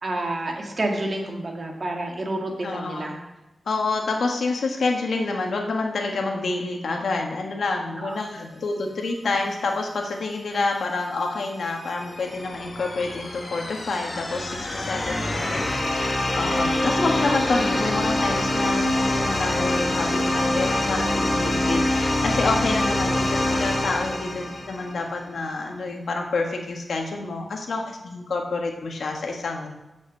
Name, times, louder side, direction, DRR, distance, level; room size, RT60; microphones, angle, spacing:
voice 1, 0.0-3.2 8.0-8.2 15.3-15.5, right 1 dB, 45° right, 1 dB, 1.8 m, -29 dB
voice 2, 2.6-3.2 3.6-29.7, left 3 dB, 80° left, 1 dB, 1.5 m, -28 dB
sound 1, 11.3-25.1, left 1 dB, 35° left, 1.5 m, -25 dB
7.4 x 6.3 x 7.5 m, 1.0 s
wide cardioid pair, 95°, 0 cm